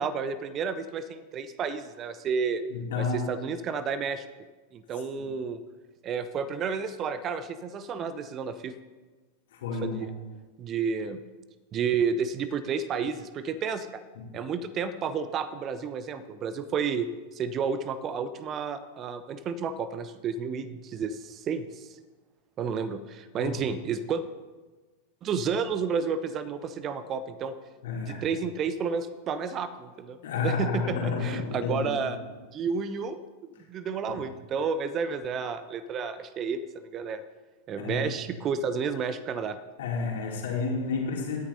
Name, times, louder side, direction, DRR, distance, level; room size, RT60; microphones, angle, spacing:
voice 1, 0.0-2.6 3.0-4.2 4.7-5.6 6.0-8.7 9.8-10.1 10.6-11.2 11.7-14.0 14.3-17.1 17.3-22.0 22.6-24.2 25.2-27.5 27.9-32.2 32.5-33.2 33.7-37.2 37.7-39.6, right 6 dB, 30° right, 14 dB, 0.5 m, -31 dB
voice 2, 2.7-3.3 5.2-5.3 9.5-10.0 14.1-14.2 23.4-23.5 27.8-28.2 30.2-31.9 34.1-34.2 37.8-38.0 39.8-41.4, left 4 dB, 60° left, -1 dB, 2.6 m, -30 dB
17.5 x 10.0 x 2.7 m, 1.3 s
figure-of-eight pair, 90°, 0 cm